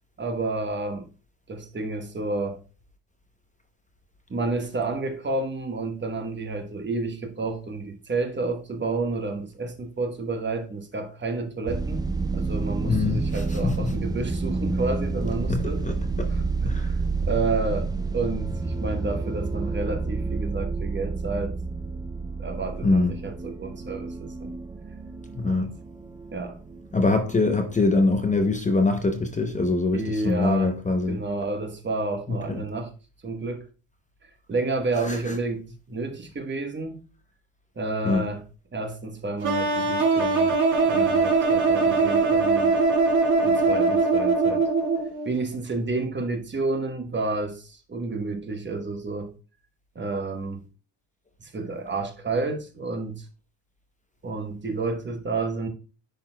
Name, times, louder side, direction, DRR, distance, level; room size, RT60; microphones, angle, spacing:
voice 1, 0.2-1.1 1.5-2.6 4.3-12.1 12.3-15.8 16.3-17.9 18.1-21.6 22.4-24.5 25.4-25.7 26.3-26.6 29.9-30.7 31.1-32.9 33.2-33.7 34.2-37.0 37.8-38.4 38.7-40.5 40.8-42.7 43.4-44.7 45.2-49.3 49.9-50.6 51.4-53.3 54.2-55.7, right 3 dB, 25° right, 1.0 m, -30 dB
sound 1, 11.7-28.4, right 3 dB, 10° right, 0.3 m, -30 dB
voice 2, 12.9-13.9 15.5-16.3 16.7-16.9 22.8-23.1 25.4-25.7 26.9-31.2 32.5-32.6 35.1-35.2 38.0-38.3, left 3 dB, 15° left, 0.7 m, -24 dB
sound 2, 39.4-45.3, right 4 dB, 45° right, 1.9 m, -21 dB
10.0 x 4.2 x 2.2 m
cardioid pair, 105°, 43 cm